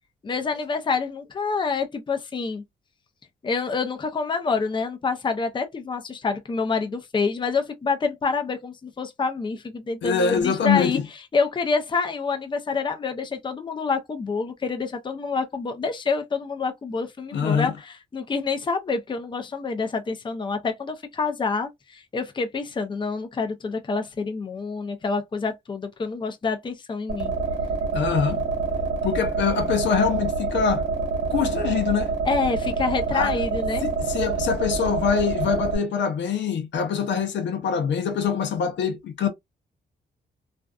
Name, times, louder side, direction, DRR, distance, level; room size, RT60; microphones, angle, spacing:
voice 1, 0.2-2.6 3.4-11.0 11.3-27.3 32.3-33.9, left 4 dB, 25° left, 0.5 m, -27 dB
voice 2, 10.0-11.0 17.3-17.7 27.9-28.4 29.0-30.8 31.3-32.1 33.1-33.3 33.8-39.3, left 7 dB, 85° left, 0.7 m, -24 dB
sound 1, 27.1-35.8, right 4 dB, 80° right, 1.2 m, -26 dB
2.5 x 2.2 x 2.3 m
cardioid pair, 100°, 18 cm